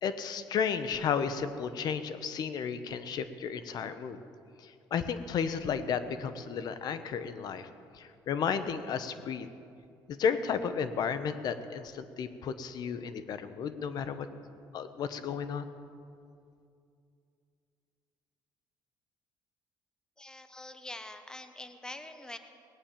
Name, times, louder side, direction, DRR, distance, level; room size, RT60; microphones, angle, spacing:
voice 1, 0.0-4.2 4.6-7.7 7.9-9.5 10.1-14.3 14.7-15.7, left 6 dB, 55° left, 11 dB, 1.0 m, -33 dB
voice 2, 20.2-22.4, left 2 dB, 10° left, 9 dB, 1.0 m, -44 dB
19.0 x 8.7 x 7.4 m, 2.5 s
cardioid pair, 115°, 8 cm